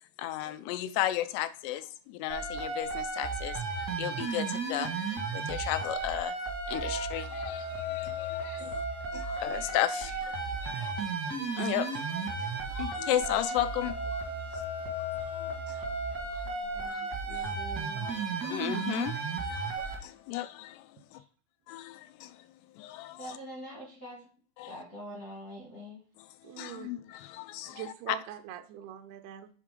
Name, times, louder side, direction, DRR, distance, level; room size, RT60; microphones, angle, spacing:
voice 1, 0.2-6.4 6.7-8.9 9.1-10.9 11.6-14.1 15.3-15.9 16.3-16.4 16.8-21.2 21.7-22.4 22.8-23.4 24.6-24.8 26.2-28.2, left 14 dB, 90° left, 2.7 m, -35 dB
sound 1, 2.3-19.9, right 3 dB, 65° right, 0.9 m, -34 dB
voice 2, 16.4-16.9 17.2-18.1 23.2-24.2 24.6-26.0, equal, 55° left, 0.9 m, -44 dB
voice 3, 26.4-26.9 27.7-29.5, right 12 dB, 80° right, 2.4 m, -42 dB
7.4 x 3.7 x 5.0 m
omnidirectional pair, 4.8 m